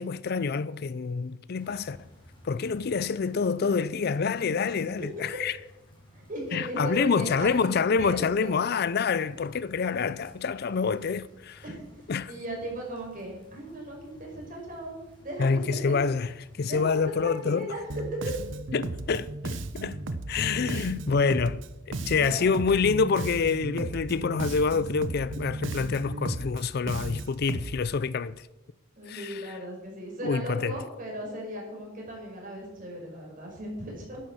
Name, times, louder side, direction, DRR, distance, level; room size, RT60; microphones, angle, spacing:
voice 1, 0.0-2.0 2.4-5.6 6.5-11.6 12.1-12.3 15.4-16.3 16.6-17.7 18.7-20.0 20.3-28.5 29.1-29.5 30.2-30.8, left 5 dB, 50° left, 0.4 m, -27 dB
sound 1, 1.6-17.5, equal, 25° left, 5.3 m, -55 dB
voice 2, 6.1-8.5 11.6-12.0 12.3-15.0 15.2-16.0 16.7-18.5 22.1-22.4 29.0-34.2, right 1 dB, 40° right, 5.5 m, -37 dB
Bass guitar, 17.9-27.8, right 2 dB, 65° right, 1.0 m, -35 dB
11.5 x 10.5 x 7.3 m
head